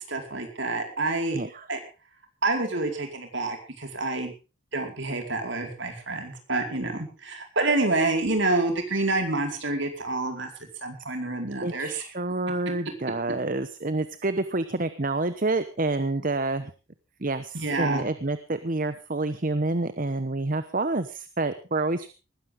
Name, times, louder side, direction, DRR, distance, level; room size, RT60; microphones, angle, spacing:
voice 1, 0.1-1.4 1.7-1.8 2.4-4.3 4.7-10.5 10.8-12.0 17.5-18.0, right 2 dB, 60° right, 4 dB, 4.7 m, -28 dB
voice 2, 1.3-1.7 11.6-16.7 17.2-22.1, right 2 dB, 40° right, 11 dB, 1.0 m, -28 dB
19.5 x 15.0 x 3.7 m, 0.33 s
head